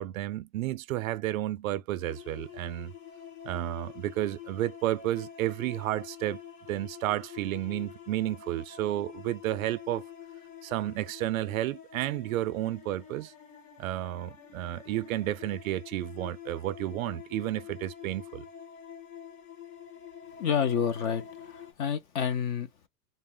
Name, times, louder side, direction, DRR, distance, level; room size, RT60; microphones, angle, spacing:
voice 1, 0.0-2.9 3.4-6.4 6.7-10.0 10.6-13.3 13.8-18.5, right 14 dB, 60° right, 0.5 m, -32 dB
sound 1, 2.0-21.7, left 9 dB, 60° left, 2.4 m, -47 dB
voice 2, 20.4-21.3 21.5-22.9, left 7 dB, 30° left, 0.5 m, -29 dB
4.0 x 2.1 x 3.7 m
hypercardioid pair, 145°, 48 cm